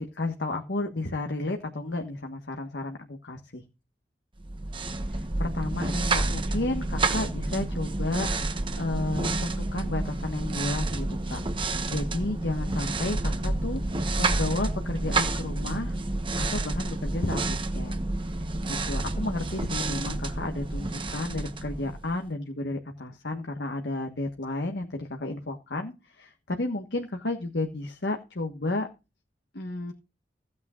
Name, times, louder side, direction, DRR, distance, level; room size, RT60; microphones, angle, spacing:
voice 1, 0.0-3.6 5.4-8.3 8.8-11.4 11.9-13.8 14.2-16.0 16.4-18.1 18.7-28.9 29.5-29.9, left 2 dB, 75° left, 4 dB, 1.5 m, -32 dB
sound 1, 4.4-22.3, right 2 dB, 30° right, 1.0 m, -29 dB
16.0 x 9.2 x 2.5 m, 0.28 s
head